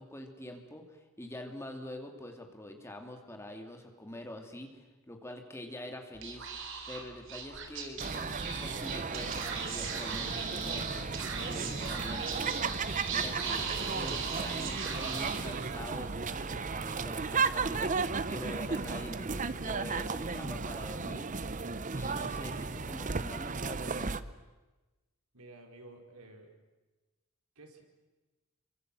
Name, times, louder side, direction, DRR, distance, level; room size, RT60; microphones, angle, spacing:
voice 1, 0.0-6.5 6.9-21.3 21.9-24.2, left 1 dB, 10° left, 4 dB, 2.6 m, -45 dB
Speech / Whispering, 6.1-16.0, right 5 dB, 60° right, 3.8 m, -38 dB
sound 1, 8.0-24.2, right 4 dB, 35° right, 0.8 m, -35 dB
voice 2, 25.3-26.6 27.5-27.8, right 2 dB, 85° right, 3 dB, 4.7 m, -52 dB
27.5 x 24.0 x 7.6 m, 1.2 s
head